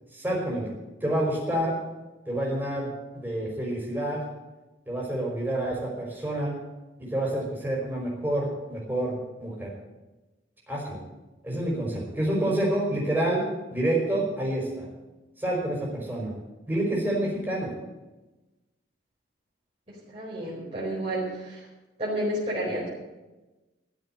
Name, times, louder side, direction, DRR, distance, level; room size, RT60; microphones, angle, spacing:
voice 1, 0.1-0.7 1.0-1.7 2.2-4.2 4.9-6.5 7.0-9.1 9.4-9.7 10.7-11.0 11.4-13.4 13.7-14.9 15.4-16.3 16.7-17.7, right 1 dB, 10° right, -3 dB, 5.2 m, -28 dB
voice 2, 20.1-21.6 22.0-22.9, right 1 dB, 35° right, -9 dB, 4.6 m, -30 dB
13.5 x 7.7 x 9.2 m, 1.1 s
head